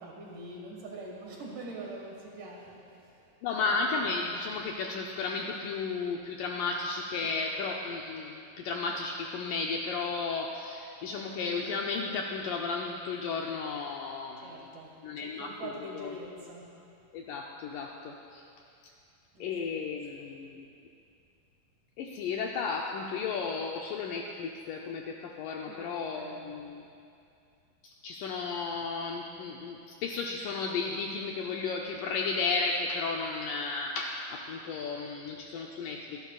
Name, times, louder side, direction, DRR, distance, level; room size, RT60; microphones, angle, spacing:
voice 1, 0.0-3.8 4.0-4.1 7.2-7.4 14.4-16.8 19.3-19.8 20.2-20.3 25.7-26.5, right 2 dB, 60° right, -2 dB, 2.9 m, -44 dB
voice 2, 3.4-14.7 15.0-16.1 17.1-18.4 19.4-20.6 22.0-26.8 27.8-36.2, left 4 dB, 90° left, 0 dB, 1.9 m, -34 dB
26.0 x 12.0 x 2.4 m, 2.5 s
omnidirectional pair, 4.6 m